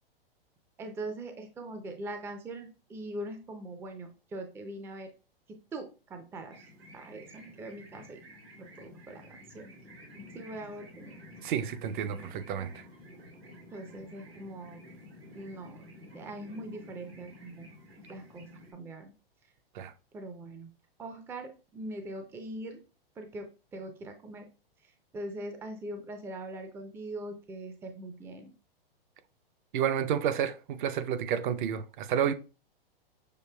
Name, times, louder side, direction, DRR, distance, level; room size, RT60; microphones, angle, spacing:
voice 1, 0.8-5.1 5.7-6.6 6.9-8.2 8.8-9.2 9.5-9.7 10.3-11.1 13.7-14.8 15.4-15.8 16.1-17.7 18.1-18.5 18.7-19.1 20.1-20.7 21.0-22.8 23.2-23.5 23.7-24.5 25.1-28.5, right 1 dB, 10° right, 0.4 m, -41 dB
sound 1, 6.5-18.7, left 1 dB, 85° right, 1.8 m, -51 dB
voice 2, 11.4-12.8 19.7-19.9 29.7-32.3, right 8 dB, 55° right, 0.6 m, -30 dB
6.5 x 2.6 x 2.2 m
hypercardioid pair, 120°, 30 cm